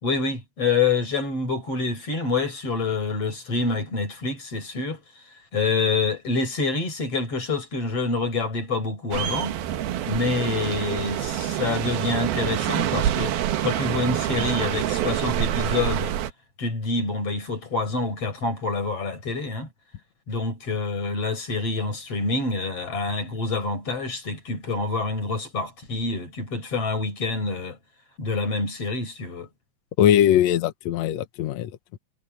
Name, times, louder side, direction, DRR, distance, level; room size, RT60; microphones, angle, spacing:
voice 1, 0.0-5.0 5.5-9.6 10.1-13.4 13.6-16.1 16.6-19.7 20.3-27.8 28.2-29.5, left 3 dB, 40° left, 5.9 m, -27 dB
sound 1, 9.1-16.3, right 11 dB, 75° right, 3.2 m, -26 dB
voice 2, 30.0-32.0, left 11 dB, 80° left, 1.6 m, -21 dB
omnidirectional pair, 4.4 m